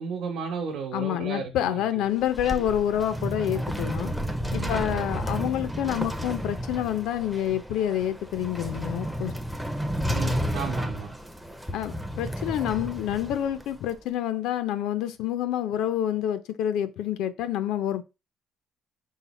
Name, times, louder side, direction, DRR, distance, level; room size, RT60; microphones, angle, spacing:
voice 1, 0.0-1.8 4.6-5.0 10.1-11.1, right 6 dB, 60° right, 0.8 m, -34 dB
voice 2, 0.9-4.1 4.5-9.3 11.7-18.0, left 11 dB, 70° left, 0.4 m, -28 dB
sound 1, 2.0-13.9, equal, ahead, 0.4 m, -32 dB
5.5 x 2.0 x 4.1 m
cardioid pair, 170°, 0 cm